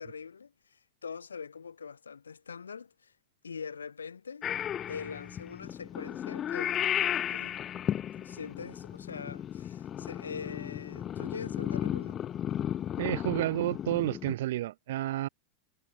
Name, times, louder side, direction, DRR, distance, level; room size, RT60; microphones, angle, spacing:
voice 1, 0.0-3.1 3.4-4.5 4.9-6.9 7.3-7.6 8.2-12.2, left 6 dB, 70° left, 2.0 m, -43 dB
Purr / Meow, 4.4-14.4, left 10 dB, 25° left, 0.4 m, -34 dB
voice 2, 13.0-15.3, right 15 dB, 55° right, 0.4 m, -30 dB
figure-of-eight pair, 90°, 0 cm